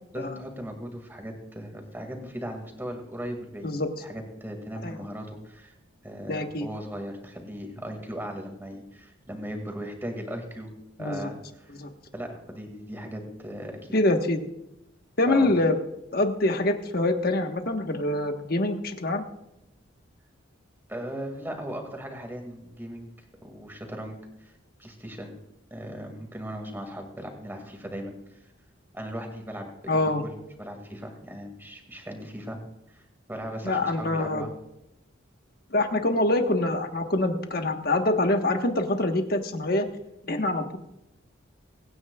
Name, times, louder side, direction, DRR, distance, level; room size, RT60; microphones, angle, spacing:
voice 1, 0.1-3.7 4.0-5.7 6.0-10.7 11.0-11.8 12.1-13.8 15.3-15.5 20.9-23.1 23.4-24.5 24.8-25.3 25.7-28.1 28.9-32.6 32.9-33.0 33.3-34.5, equal, 10° right, 3 dB, 2.0 m, -38 dB
voice 2, 6.3-6.7 11.0-11.3 11.8-11.9 13.9-14.4 15.2-15.8 16.1-19.2 29.9-30.2 33.6-34.4 35.7-39.9 40.3-40.8, left 2 dB, 45° left, 5 dB, 1.2 m, -25 dB
24.5 x 9.5 x 2.3 m, 0.87 s
head